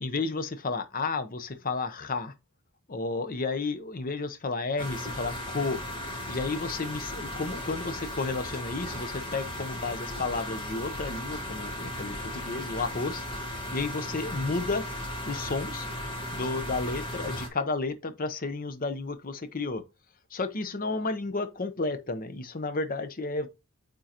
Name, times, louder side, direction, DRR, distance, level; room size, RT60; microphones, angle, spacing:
voice 1, 0.0-2.3 2.9-5.8 6.3-13.3 13.7-14.8 15.3-15.9 16.3-19.8 20.3-23.5, left 3 dB, 40° left, 0.7 m, -32 dB
sound 1, 4.8-17.5, left 1 dB, 20° left, 1.7 m, -36 dB
8.9 x 3.9 x 2.9 m
head